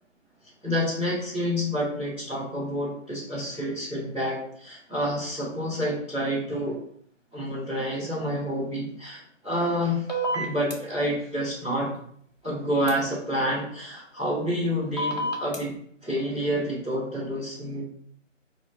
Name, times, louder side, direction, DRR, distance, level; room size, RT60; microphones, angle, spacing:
voice 1, 0.6-6.8 7.3-10.1 10.3-11.9 12.4-15.7 16.0-17.8, equal, 10° right, -16 dB, 1.2 m, -28 dB
sound 1, 10.1-10.7 12.9-13.0 15.0-15.6, right 1 dB, 35° left, 0.7 m, -28 dB
4.7 x 2.4 x 4.5 m, 0.65 s
hypercardioid pair, 175°, 38 cm